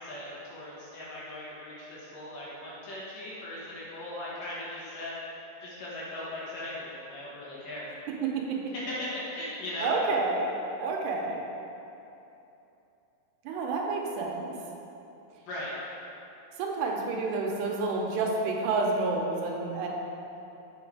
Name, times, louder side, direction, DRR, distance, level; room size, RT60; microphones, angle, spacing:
voice 1, 0.0-5.1 5.6-7.9 8.9-9.9 15.5-15.8, left 1 dB, 65° left, -7 dB, 2.6 m, -38 dB
voice 2, 9.8-10.5 10.8-11.4 13.5-14.5 16.6-19.9, right 3 dB, 85° right, 0 dB, 2.9 m, -29 dB
7.9 x 6.2 x 4.7 m, 2.9 s
omnidirectional pair, 4.9 m